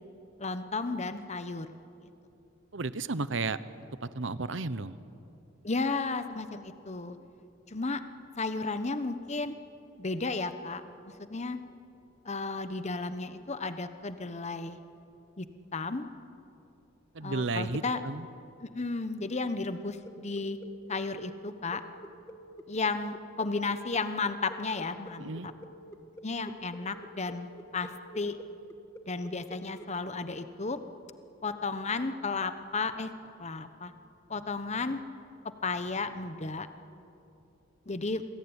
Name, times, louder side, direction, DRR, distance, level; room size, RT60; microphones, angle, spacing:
voice 1, 0.4-1.7 5.6-7.2 7.7-8.0 8.4-9.5 10.0-11.6 12.2-14.8 15.4-15.5 15.7-16.1 17.2-18.0 18.6-20.6 20.9-21.8 22.7-25.5 26.2-27.9 28.1-28.4 29.1-30.8 31.4-33.1 33.4-33.9 34.3-35.0 35.6-36.7 37.9-38.2, left 3 dB, 35° left, 10 dB, 1.1 m, -33 dB
voice 2, 2.7-3.6 4.0-5.0 17.1-18.3 25.2-25.5, right 3 dB, 70° right, 15 dB, 1.0 m, -33 dB
sound 1, 20.0-29.9, equal, 15° left, 1.5 m, -49 dB
27.5 x 21.5 x 9.8 m, 2.7 s
head